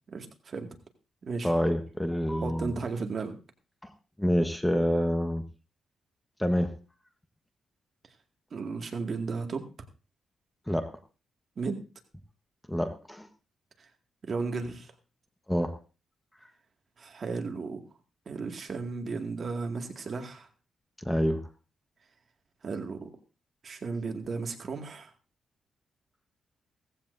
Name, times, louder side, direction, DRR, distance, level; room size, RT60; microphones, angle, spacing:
voice 1, 0.1-0.7 1.2-1.5 2.4-3.4 8.5-9.6 11.6-11.8 14.2-14.9 17.0-17.8 18.3-20.5 22.6-23.1 23.6-25.1, right 4 dB, 45° right, 4 dB, 2.0 m, -34 dB
voice 2, 1.4-2.7 3.8-3.9 4.2-5.4 6.4-6.8 10.7-11.0 12.7-13.3 15.5-15.8 21.0-21.4, equal, 5° left, 8 dB, 1.1 m, -27 dB
17.5 x 15.0 x 2.6 m, 0.32 s
cardioid pair, 100°, 0 cm